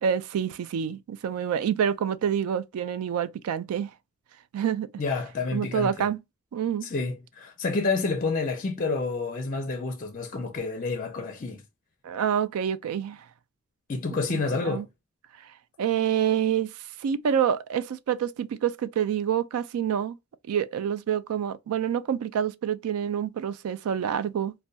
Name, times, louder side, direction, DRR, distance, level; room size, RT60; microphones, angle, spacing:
voice 1, 0.0-3.9 4.5-4.9 5.5-6.2 6.5-6.9 12.0-13.3 14.3-14.8 15.8-20.2 20.5-24.5, right 8 dB, 80° right, 0.3 m, -27 dB
voice 2, 5.0-6.1 6.8-11.6 13.9-14.9, left 4 dB, 40° left, 0.5 m, -29 dB
2.2 x 2.2 x 2.6 m
head